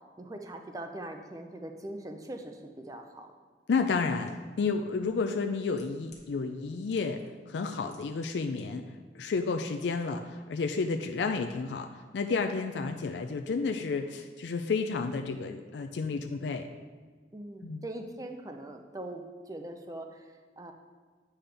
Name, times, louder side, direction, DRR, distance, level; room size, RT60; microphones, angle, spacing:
voice 1, 0.2-3.3 9.4-9.5 17.3-20.7, right 1 dB, 20° right, 5 dB, 0.5 m, -42 dB
voice 2, 3.7-7.2 7.5-8.8 9.1-11.9 12.1-16.7 17.6-17.8, left 4 dB, 80° left, 5 dB, 0.4 m, -31 dB
sound 1, 4.3-4.4 5.3-6.3 6.9-7.3 7.6-8.6 8.9-9.0, left 6 dB, 40° left, 1.2 m, -57 dB
8.5 x 5.6 x 3.4 m, 1.5 s
head